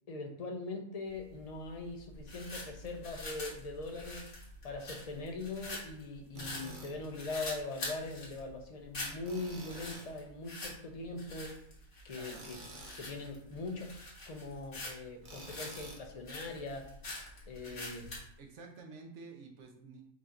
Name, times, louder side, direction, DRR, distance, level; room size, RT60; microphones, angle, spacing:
voice 1, 0.1-4.3 4.6-11.6 12.0-12.6 13.0-13.9 14.3-16.9 17.5-18.0, left 3 dB, 45° left, 2 dB, 0.5 m, -41 dB
sound 1, 1.1-18.3, left 2 dB, 65° left, 1.6 m, -46 dB
Tools, 6.4-6.9 9.3-10.1 12.3-13.0 15.2-16.1, right 1 dB, 40° right, 0.9 m, -48 dB
voice 2, 12.1-12.5 17.6-17.8 18.4-20.1, right 4 dB, 65° right, 3 dB, 1.0 m, -51 dB
4.9 x 2.8 x 3.7 m, 0.68 s
omnidirectional pair, 1.4 m